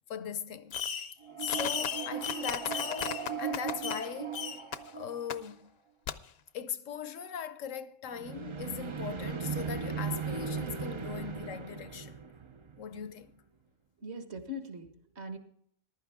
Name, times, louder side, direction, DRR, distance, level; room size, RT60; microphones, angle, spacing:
voice 1, 0.1-0.8 1.4-4.5 4.9-5.7 6.5-12.2 12.8-13.4, left 7 dB, 80° left, 1.2 m, -40 dB
Fireworks, 0.7-1.1 1.4-4.1 4.3-4.8 5.3-5.4 6.1-6.2, left 7 dB, 60° left, 0.9 m, -35 dB
sound 1, 1.2-5.5 8.1-13.1, right 6 dB, 40° right, 0.4 m, -38 dB
voice 2, 14.0-15.4, left 1 dB, 55° right, 1.9 m, -41 dB
14.5 x 11.5 x 3.5 m
omnidirectional pair, 1.3 m